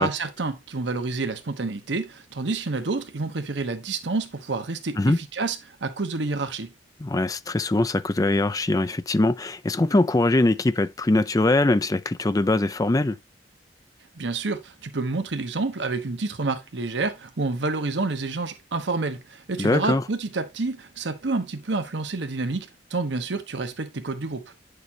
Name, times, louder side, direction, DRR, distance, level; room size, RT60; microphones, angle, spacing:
voice 1, 0.0-6.7 14.2-24.5, right 3 dB, 80° right, 1.0 m, -29 dB
voice 2, 7.0-13.2 19.6-20.0, left 2 dB, 20° left, 0.4 m, -22 dB
9.6 x 6.7 x 2.8 m
head